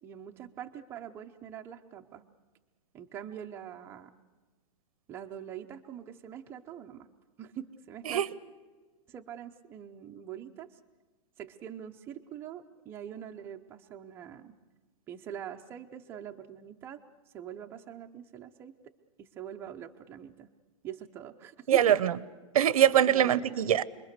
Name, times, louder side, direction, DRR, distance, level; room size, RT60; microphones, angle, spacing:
voice 1, 0.0-2.2 2.9-4.1 5.1-7.1 7.4-8.3 9.1-10.8 11.4-14.5 15.1-17.0 17.3-18.7 19.2-20.5 20.8-22.0 23.1-23.7, right 9 dB, 15° right, 4 dB, 0.7 m, -43 dB
voice 2, 21.7-22.1 22.5-23.8, right 10 dB, 90° right, 19 dB, 0.9 m, -23 dB
27.0 x 21.5 x 6.7 m, 1.3 s
supercardioid pair, 170°, 18 cm